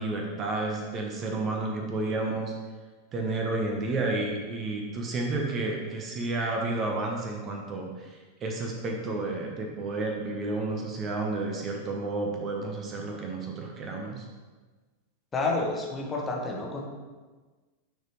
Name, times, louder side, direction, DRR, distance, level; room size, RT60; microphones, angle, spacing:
voice 1, 0.0-2.5 3.1-14.2, right 2 dB, 30° right, 1 dB, 1.0 m, -31 dB
voice 2, 15.3-16.8, left 3 dB, 20° left, -1 dB, 1.2 m, -29 dB
9.1 x 4.2 x 3.2 m, 1.3 s
figure-of-eight pair, 90°, 0 cm